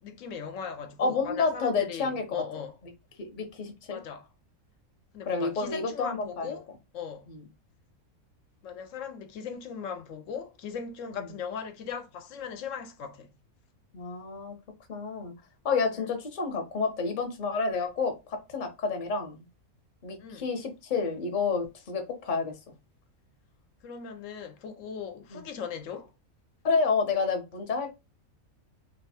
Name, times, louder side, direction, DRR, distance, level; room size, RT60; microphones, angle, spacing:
voice 1, 0.0-2.8 3.9-4.3 5.1-6.7 6.9-7.3 8.6-13.3 15.9-16.1 20.2-20.5 23.8-26.1, left 6 dB, 70° left, 0.9 m, -38 dB
voice 2, 1.0-2.2 3.2-4.0 5.3-6.6 7.3-7.4 13.9-14.6 14.9-15.3 15.6-18.1 18.5-19.4 20.0-22.5 25.3-25.4 26.6-27.9, left 4 dB, 40° left, 0.8 m, -29 dB
2.9 x 2.2 x 4.1 m
omnidirectional pair, 1.5 m